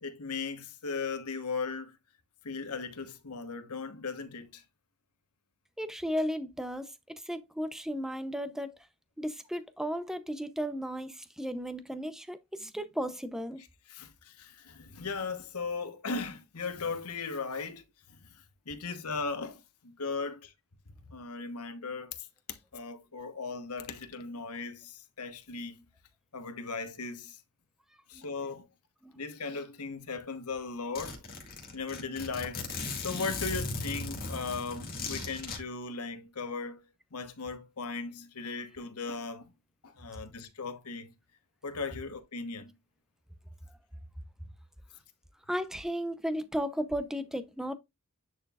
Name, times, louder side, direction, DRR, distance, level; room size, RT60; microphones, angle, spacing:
voice 1, 0.0-2.0 2.4-4.6 13.9-17.8 18.1-20.5 21.1-25.8 26.3-27.4 28.1-28.7 29.2-31.2 31.7-36.8 37.1-39.4 39.8-41.1 41.6-42.7, left 4 dB, 85° left, 1.1 m, -37 dB
voice 2, 5.8-8.8 9.2-13.6 28.1-28.3 29.0-29.2 43.7-43.8 45.5-47.7, equal, ahead, 0.6 m, -35 dB
Zipper (clothing), 30.5-30.6 31.0-35.6, left 3 dB, 40° left, 2.2 m, -37 dB
10.0 x 4.4 x 2.4 m
head